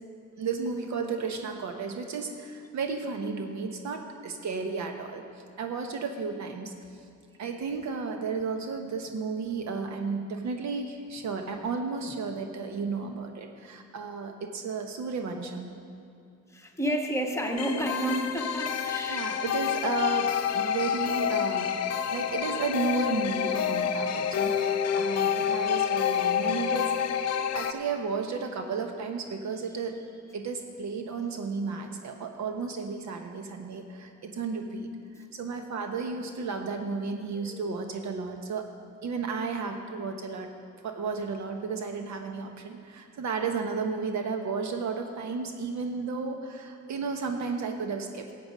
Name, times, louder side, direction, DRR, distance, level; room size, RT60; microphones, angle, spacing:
voice 1, 0.4-5.2 5.6-6.7 7.4-15.8 19.1-21.8 22.1-26.9 27.2-30.0 30.3-34.9 35.3-38.7 39.0-40.5 40.8-48.3, right 4 dB, 65° right, 5 dB, 1.1 m, -33 dB
voice 2, 16.5-19.2 37.3-37.7, equal, 10° left, 1 dB, 1.3 m, -31 dB
sound 1, 17.5-27.7, left 8 dB, 55° left, 0.7 m, -28 dB
13.0 x 8.0 x 5.2 m, 2.4 s
cardioid pair, 90°, 30 cm